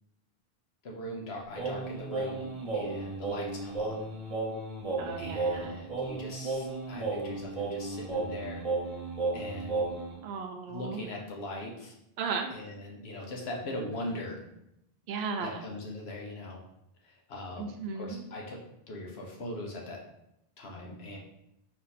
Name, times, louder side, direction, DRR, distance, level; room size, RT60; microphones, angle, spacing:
voice 1, 0.8-4.0 5.2-8.8 9.3-9.8 10.7-11.9 12.5-14.4 15.4-16.6 17.0-18.6 18.9-20.0 20.6-21.2, left 1 dB, 85° left, -1 dB, 1.1 m, -40 dB
Singing, 1.6-10.2, right 3 dB, 35° right, 1.0 m, -34 dB
voice 2, 5.0-5.8 10.2-11.0 12.2-12.5 15.1-15.6 17.6-18.3, right 5 dB, 80° right, 4 dB, 0.8 m, -35 dB
4.2 x 2.7 x 4.1 m, 0.80 s
omnidirectional pair, 1.0 m